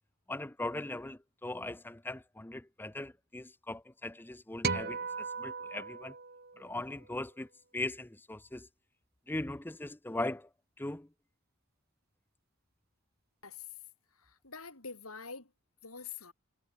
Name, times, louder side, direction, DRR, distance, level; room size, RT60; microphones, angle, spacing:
voice 1, 0.3-6.2 6.6-8.7 9.3-10.5 10.8-11.1, left 2 dB, 10° left, 0.5 m, -39 dB
sound 1, 4.6-7.1, right 4 dB, 45° right, 2.1 m, -37 dB
voice 2, 13.4-13.8 14.1-15.5 15.8-16.3, left 5 dB, 85° left, 7.5 m, -46 dB
head